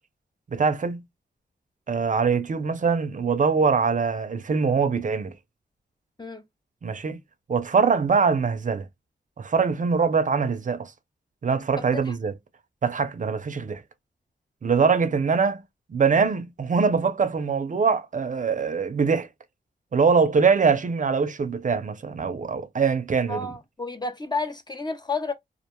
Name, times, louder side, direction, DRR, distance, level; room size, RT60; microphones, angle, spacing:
voice 1, 0.5-1.0 1.9-5.3 6.8-7.2 7.5-8.9 9.4-10.9 11.4-12.3 12.8-13.8 14.6-15.6 15.9-19.3 19.9-23.5, right 5 dB, 45° right, 0.5 m, -23 dB
voice 2, 23.3-25.3, left 3 dB, 25° left, 0.4 m, -31 dB
2.4 x 2.2 x 2.9 m
wide cardioid pair, 95°, 18 cm